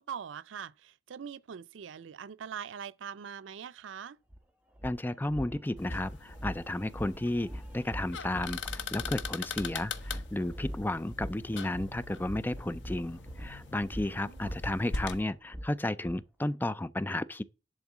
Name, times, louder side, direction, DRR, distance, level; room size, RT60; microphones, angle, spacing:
voice 1, 0.0-4.2 14.1-14.6, right 7 dB, 90° right, 0.4 m, -43 dB
sound 1, 4.3-4.4 4.8-16.2, equal, 5° right, 1.4 m, -43 dB
voice 2, 4.8-17.4, left 1 dB, 10° left, 0.4 m, -33 dB
sound 2, 5.8-15.2, left 4 dB, 75° left, 1.0 m, -41 dB
11.0 x 3.8 x 7.3 m
head